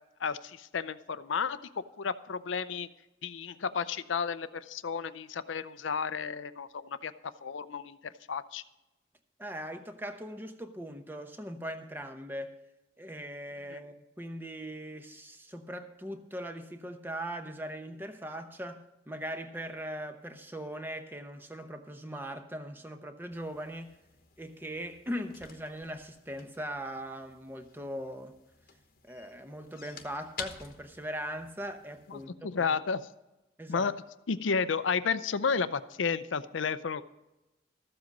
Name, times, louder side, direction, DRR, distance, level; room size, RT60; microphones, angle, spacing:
voice 1, 0.2-2.9 3.2-8.6 13.7-13.8 32.1-33.0 33.7-33.9 34.3-37.0, left 5 dB, 90° left, 0.6 m, -32 dB
voice 2, 9.4-12.6 13.0-23.9 24.4-28.3 29.0-32.7 33.6-33.9, equal, 10° right, 0.8 m, -40 dB
sound 1, 23.3-32.3, left 7 dB, 50° left, 1.1 m, -50 dB
14.0 x 7.7 x 5.3 m
head